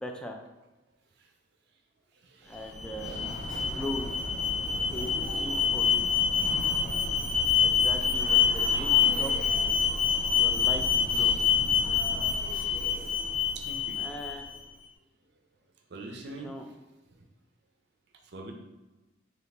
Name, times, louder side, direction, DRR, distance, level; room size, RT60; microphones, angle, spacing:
voice 1, 0.0-0.4 2.4-4.1 4.9-6.1 7.6-9.3 10.3-11.4 14.0-14.5 16.4-16.7, equal, 5° left, 1 dB, 0.3 m, -39 dB
voice 2, 2.2-2.7 8.7-9.1 13.5-14.0 15.9-16.5 18.3-18.5, right 2 dB, 60° right, 2 dB, 0.6 m, -43 dB
Alarm, 2.6-14.6, left 6 dB, 45° left, 0.7 m, -26 dB
4.1 x 2.9 x 3.4 m, 1.1 s
head